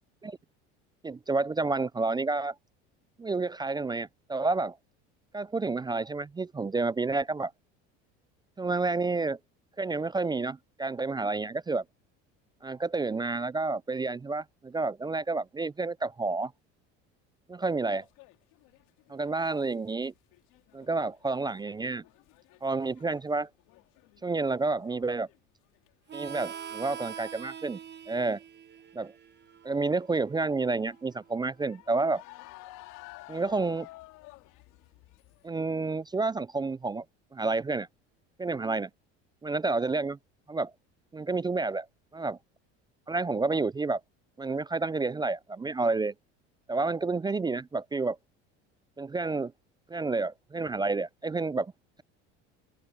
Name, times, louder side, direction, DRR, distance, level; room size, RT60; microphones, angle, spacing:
voice 1, 1.0-2.5 3.2-4.8 5.3-7.5 8.6-9.4 9.8-11.8 12.6-16.5 17.5-18.0 19.1-20.1 20.7-22.0 22.6-23.5 24.2-25.3 26.1-27.8 28.1-28.4 28.9-29.1 29.6-32.2 33.3-33.9 35.4-37.0 37.3-37.9 38.4-38.9 39.4-40.2 40.5-40.7 41.1-41.8 42.1-42.4 43.1-44.0 44.4-46.1 46.7-48.2 49.0-49.5 49.9-51.7, right 3 dB, 15° right, 0.4 m, -30 dB
sound 1, 17.6-20.1 20.3-25.4 25.6-26.1 26.6-27.0 28.8-29.1 29.5-29.6 30.6-35.5, left 19 dB, 70° left, 2.3 m, -53 dB
Harmonica, 26.1-31.4, right 8 dB, 30° right, 1.2 m, -44 dB
open air
supercardioid pair, 85°, 32 cm